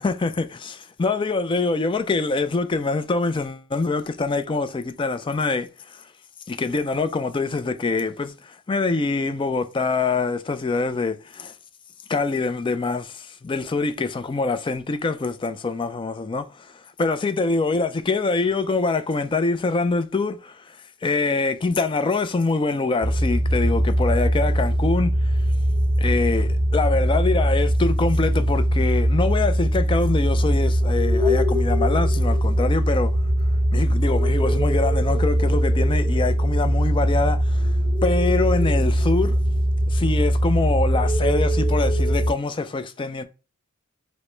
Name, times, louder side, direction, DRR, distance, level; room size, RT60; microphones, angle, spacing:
voice 1, 0.0-6.0 6.5-11.5 12.1-20.8 21.0-25.3 26.0-33.1 33.7-37.7 38.0-39.4 39.9-43.2, left 3 dB, 25° left, 0.3 m, -24 dB
sound 1, 23.0-42.3, equal, 30° right, 0.9 m, -21 dB
5.1 x 2.0 x 4.3 m
head